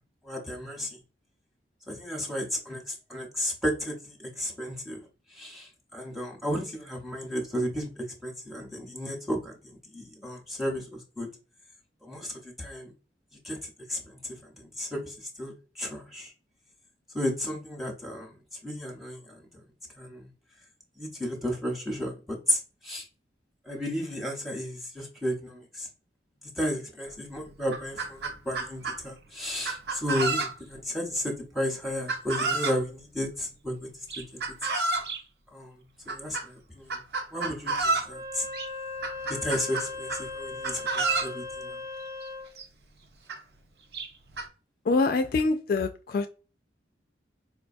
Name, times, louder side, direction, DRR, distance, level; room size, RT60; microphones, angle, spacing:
voice 1, 0.2-0.9 1.9-5.0 5.3-9.5 9.9-11.3 12.0-12.9 13.4-13.6 13.9-14.2 14.6-16.3 17.1-18.3 18.6-19.4 20.0-20.3 21.0-23.1 23.7-25.9 26.6-33.9 35.5-35.7 36.1-37.0 37.3-38.4 39.3-41.8, equal, ahead, 0.8 m, -33 dB
Chicken rooster, 27.1-27.2 27.5-29.0 29.6-30.8 32.1-32.8 34.1-35.2 36.1-36.5 36.9-38.1 38.5-38.7 39.0-40.3 40.6-41.3 42.3-42.4 42.6-42.7 43.3-43.4 43.9-44.5, right 3 dB, 65° right, 0.6 m, -30 dB
Wind instrument woodwind instrument, 38.0-42.5, left 3 dB, 20° right, 0.5 m, -38 dB
voice 2, 44.9-46.3, left 3 dB, 55° left, 0.3 m, -25 dB
4.6 x 2.2 x 2.5 m
head